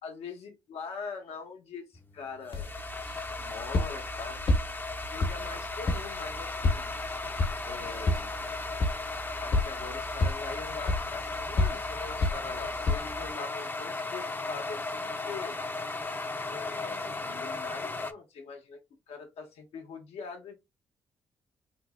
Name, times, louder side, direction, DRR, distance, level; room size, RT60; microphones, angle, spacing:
voice 1, 0.0-2.7 3.4-4.4 5.0-7.0 7.6-8.4 9.4-15.6 16.5-18.8 19.1-20.5, left 5 dB, 75° left, 1.0 m, -42 dB
sound 1, 1.9-18.1, left 3 dB, 20° left, 0.6 m, -36 dB
sound 2, 2.5-13.3, left 2 dB, 60° left, 1.2 m, -32 dB
3.8 x 2.0 x 3.5 m
supercardioid pair, 50°, 11 cm